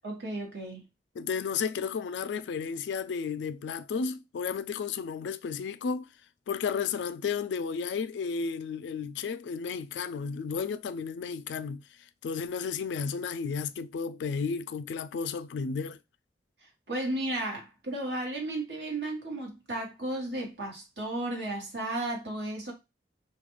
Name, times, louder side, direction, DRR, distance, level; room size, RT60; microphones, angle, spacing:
voice 1, 0.0-0.8 16.9-22.7, right 1 dB, 70° right, 1.2 m, -34 dB
voice 2, 1.2-6.1 6.5-11.8 12.2-16.0, left 5 dB, 80° left, 0.3 m, -33 dB
2.4 x 2.2 x 2.9 m
head